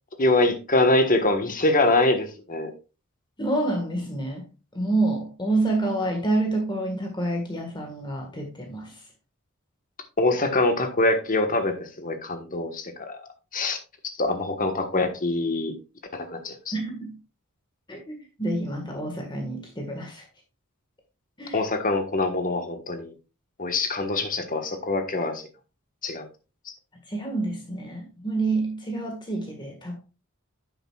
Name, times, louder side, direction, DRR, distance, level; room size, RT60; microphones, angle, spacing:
voice 1, 0.2-2.7 10.2-13.2 13.5-13.8 14.2-15.7 16.1-16.7 21.5-23.1 23.6-25.5 26.0-26.3, left 2 dB, 40° left, 1.3 m, -24 dB
voice 2, 3.4-4.5 4.7-9.0 16.7-17.2 17.9-20.2 21.4-21.6 27.1-30.0, right 2 dB, 20° left, 1.6 m, -28 dB
10.0 x 7.9 x 2.4 m
head